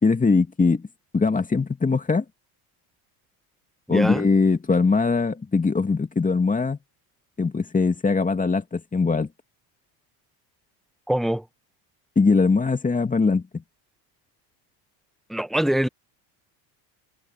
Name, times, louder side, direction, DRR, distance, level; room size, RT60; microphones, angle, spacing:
voice 1, 0.0-0.9 1.1-2.2 3.9-6.8 7.4-9.3 12.2-13.6, left 4 dB, 15° left, 2.2 m, -21 dB
voice 2, 3.9-4.3 11.1-11.4 15.3-15.9, right 1 dB, ahead, 1.1 m, -23 dB
supercardioid pair, 100°, 48 cm